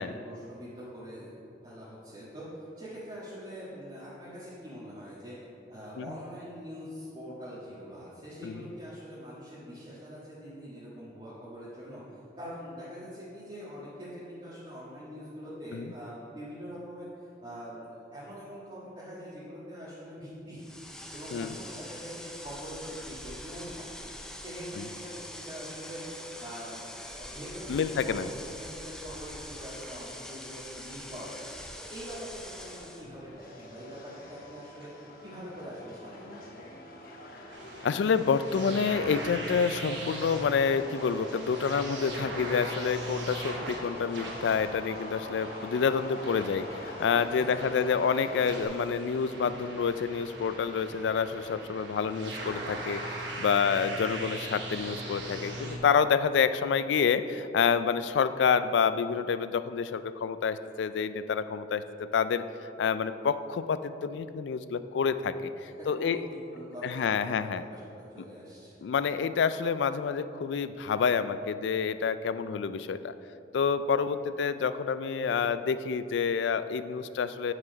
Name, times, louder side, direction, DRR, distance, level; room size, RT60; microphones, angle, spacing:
voice 1, 0.0-5.3 5.7-17.1 17.4-24.1 24.4-26.1 26.4-27.8 28.1-31.5 31.9-34.9 35.2-36.4 47.3-47.8 65.8-66.2 66.5-67.8 68.1-68.8, equal, 30° right, -9 dB, 1.5 m, -43 dB
sound 1, 20.6-33.1, left 1 dB, 5° left, 0.4 m, -44 dB
voice 2, 27.7-28.3 37.8-53.0 53.4-61.8 62.1-62.4 62.8-66.2 66.8-67.6 68.8-73.1 73.5-77.5, left 6 dB, 75° left, 12 dB, 0.3 m, -28 dB
Subway metro underground, 32.5-48.7, left 1 dB, 50° left, 1.1 m, -44 dB
sound 2, 37.5-55.8, right 1 dB, 90° right, 1.2 m, -40 dB
8.4 x 4.9 x 5.1 m, 2.7 s
head